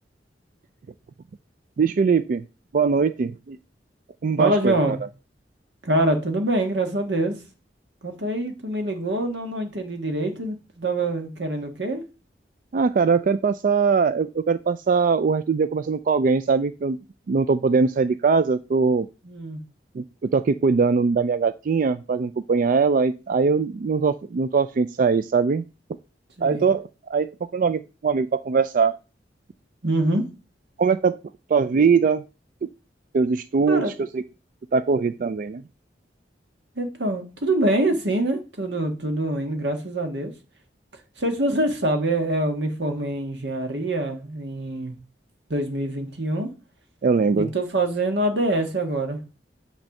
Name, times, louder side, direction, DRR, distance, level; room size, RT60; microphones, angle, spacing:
voice 1, 1.8-2.4 2.7-3.6 4.2-4.8 12.7-17.0 17.3-19.1 20.0-20.1 20.3-25.6 26.4-29.0 30.8-31.2 31.5-32.2 33.1-33.8 34.1-34.2 34.7-35.6 47.0-47.5, right 5 dB, 50° right, 0.3 m, -21 dB
voice 2, 4.4-5.0 5.8-7.4 8.0-12.0 19.2-19.6 26.4-26.7 29.8-30.2 33.7-33.9 36.7-40.3 41.2-44.9 45.5-46.5 47.4-49.2, right 1 dB, 80° right, 1.6 m, -25 dB
8.8 x 3.3 x 6.4 m
head